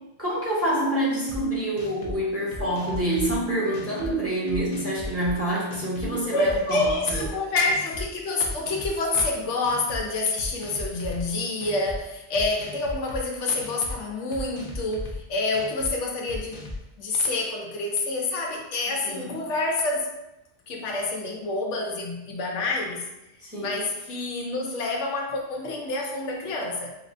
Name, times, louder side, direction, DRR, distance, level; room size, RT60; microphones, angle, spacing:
voice 1, 0.2-7.2 19.0-19.4 23.4-23.8, right 1 dB, 15° right, -6 dB, 0.8 m, -27 dB
sound 1, 1.3-1.4 1.8-2.2 2.5-3.4 3.7-4.1 4.5-5.3 5.7-6.1 6.4-7.3 7.7-8.0 8.4-9.3 9.6-10.0 10.4-11.2 11.6-12.0 12.3-13.2 13.6-13.9 14.3-15.2 15.5-15.9 16.3-16.8, left 1 dB, 45° left, 0.6 m, -36 dB
voice 2, 6.3-16.6 17.0-20.1 20.7-23.1 23.6-26.9, left 2 dB, 85° left, 1 dB, 1.0 m, -27 dB
4.8 x 2.1 x 2.6 m, 0.92 s
omnidirectional pair, 1.2 m